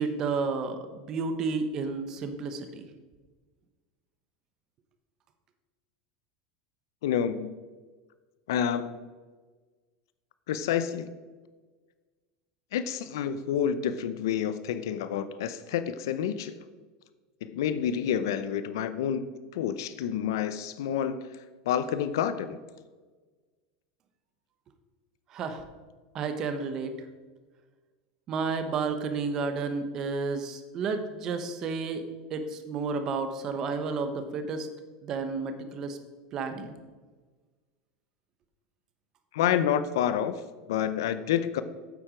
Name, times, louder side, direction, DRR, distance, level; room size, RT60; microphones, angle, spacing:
voice 1, 0.0-2.9 25.3-25.6 26.1-26.9 28.3-32.0 32.3-34.7 35.0-36.0 36.3-36.7, right 4 dB, 25° right, 8 dB, 0.8 m, -31 dB
voice 2, 7.0-7.5 8.5-8.9 10.5-11.1 12.7-16.5 17.4-19.3 19.5-21.3 21.7-22.6 39.3-40.3 40.7-41.6, left 9 dB, 80° left, 12 dB, 0.6 m, -28 dB
9.2 x 7.6 x 5.0 m, 1.4 s
supercardioid pair, 180°, 2 cm